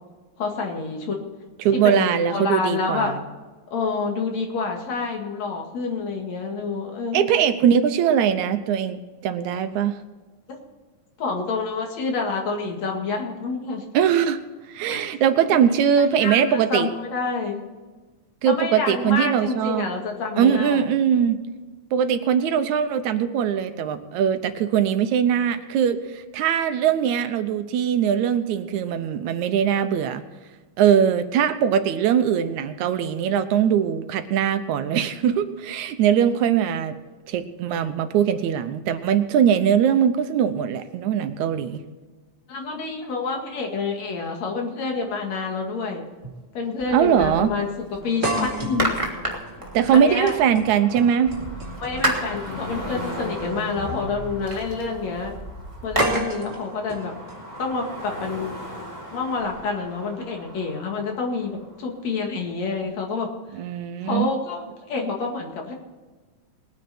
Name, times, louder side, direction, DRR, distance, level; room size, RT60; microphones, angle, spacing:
voice 1, 0.4-1.2 1.7-3.1 3.7-7.3 10.5-10.6 11.2-13.8 14.8-15.1 15.4-15.8 16.1-17.6 18.5-20.8 42.5-46.0 46.5-49.0 49.9-50.3 51.8-55.3 55.8-57.1 57.6-58.5 59.1-63.3 64.0-65.7, left 4 dB, 65° left, 2 dB, 3.2 m, -28 dB
voice 2, 1.6-3.2 7.1-10.0 13.9-14.4 14.7-16.9 18.4-19.9 20.4-21.4 21.9-30.2 30.8-37.0 37.3-41.8 46.9-47.5 49.7-51.4 63.5-64.3, right 8 dB, 80° right, 9 dB, 2.2 m, -21 dB
sound 1, 45.0-45.1 46.2-46.4 46.8-46.9 48.2-52.3 53.4-53.6 56.0-58.0, right 1 dB, 30° right, 3.5 m, -32 dB
sound 2, 46.8-48.0 48.4-50.6 51.2-56.2, right 1 dB, 10° right, 1.9 m, -31 dB
sound 3, 48.0-62.1 62.8-62.9, left 1 dB, 15° left, 5.3 m, -39 dB
20.5 x 9.6 x 4.4 m, 1.3 s
omnidirectional pair, 3.4 m